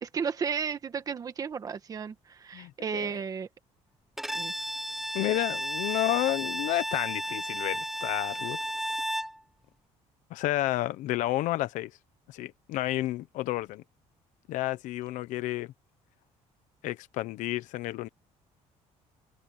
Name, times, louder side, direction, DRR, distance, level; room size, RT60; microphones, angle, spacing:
voice 1, 0.0-3.5 4.3-4.5, right 6 dB, 30° right, 1.6 m, -33 dB
voice 2, 2.5-3.2 5.1-8.6 10.3-11.9 12.3-13.8 14.5-15.7 16.8-18.1, left 16 dB, 80° left, 1.1 m, -31 dB
Bowed string instrument, 4.2-9.4, equal, ahead, 1.0 m, -33 dB
open air
cardioid pair, 165°, 13 cm